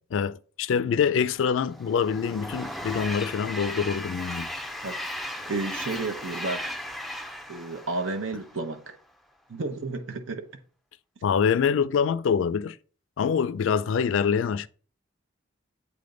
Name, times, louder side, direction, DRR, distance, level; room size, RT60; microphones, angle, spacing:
voice 1, 0.1-4.5 11.2-12.8 13.2-14.7, left 6 dB, 75° left, 0.3 m, -25 dB
Train, 1.3-8.8, left 1 dB, ahead, 0.4 m, -37 dB
voice 2, 4.8-6.8 7.5-9.0 9.5-10.5, right 3 dB, 85° right, 0.9 m, -32 dB
8.2 x 3.5 x 3.8 m
head